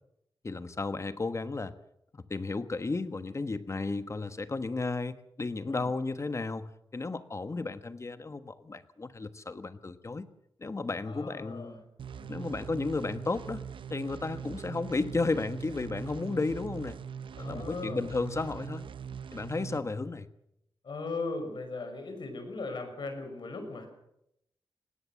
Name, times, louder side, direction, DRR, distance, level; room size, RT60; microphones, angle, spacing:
voice 1, 0.4-1.7 2.1-10.3 10.6-11.8 12.3-13.6 13.9-17.0 17.4-18.8 19.3-20.3, left 3 dB, 35° left, 11 dB, 1.3 m, -33 dB
voice 2, 11.0-11.8 12.2-12.5 14.3-14.5 17.3-18.1 19.7-19.8 20.8-23.9, left 3 dB, 65° left, 6 dB, 5.8 m, -38 dB
sound 1, 12.0-19.8, right 7 dB, 80° right, 0.7 m, -41 dB
20.0 x 17.5 x 7.5 m, 0.79 s
wide cardioid pair, 95°, 9 cm